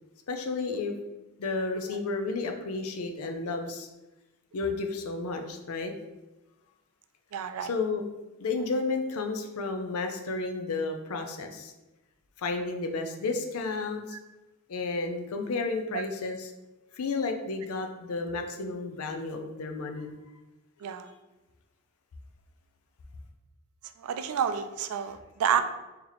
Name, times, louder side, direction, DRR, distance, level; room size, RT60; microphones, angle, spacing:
voice 1, 0.3-0.9 1.4-3.9 4.5-5.9 7.6-8.0 8.4-11.7 12.4-14.2 14.7-16.5 16.9-20.2 20.8-21.2, left 3 dB, 75° left, 5 dB, 0.5 m, -32 dB
voice 2, 7.3-7.7 14.1-14.2 15.9-16.0 20.8-21.1 24.0-25.6, right 8 dB, 75° right, 9 dB, 0.3 m, -29 dB
3.9 x 2.8 x 3.0 m, 1.1 s
head